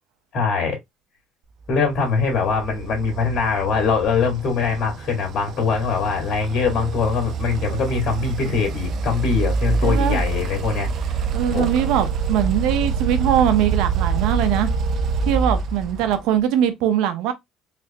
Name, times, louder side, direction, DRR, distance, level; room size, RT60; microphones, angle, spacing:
voice 1, 0.3-0.8 1.7-11.2 11.5-11.6, left 5 dB, 55° left, 1.8 m, -22 dB
sound 1, 1.9-16.4, right 5 dB, 55° right, 0.5 m, -26 dB
voice 2, 9.8-10.2 11.3-14.7 15.3-17.3, right 10 dB, 80° right, 0.8 m, -21 dB
3.4 x 3.1 x 2.8 m
cardioid pair, 105°, 0 cm